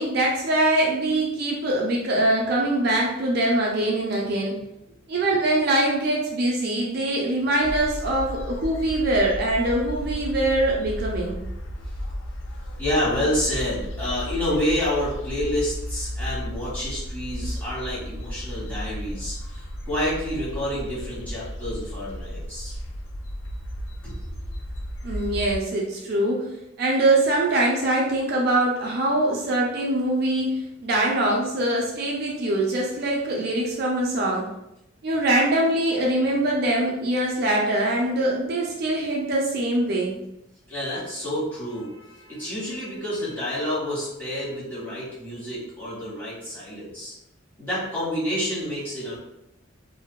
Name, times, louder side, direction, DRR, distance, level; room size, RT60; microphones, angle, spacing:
voice 1, 0.0-4.6 5.1-11.4 25.0-26.4 26.8-34.5 35.0-40.2, right 1 dB, 50° right, -2 dB, 0.4 m, -23 dB
in the park in spring, 7.6-25.6, equal, 70° left, 0.3 m, -34 dB
voice 2, 12.8-22.8 24.0-24.3 40.7-47.1 47.6-49.2, left 1 dB, 10° left, -9 dB, 1.0 m, -29 dB
2.6 x 2.2 x 2.2 m, 0.86 s
head